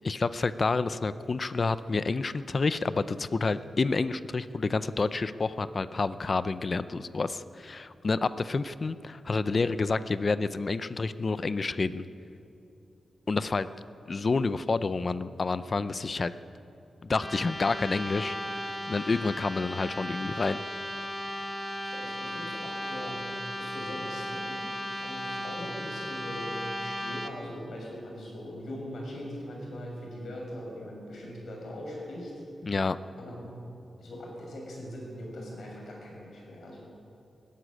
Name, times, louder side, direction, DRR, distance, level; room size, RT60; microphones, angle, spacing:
voice 1, 0.0-12.1 13.3-13.7 14.1-16.3 17.1-18.3 18.9-20.6 32.6-33.0, left 3 dB, 35° left, 14 dB, 0.5 m, -29 dB
sound 1, 17.2-27.3, equal, 10° left, 1.3 m, -36 dB
voice 2, 21.8-32.3 33.2-33.6 34.0-36.8, equal, 75° left, -1 dB, 6.8 m, -41 dB
18.5 x 14.0 x 10.0 m, 2.7 s
wide cardioid pair, 165°, 0 cm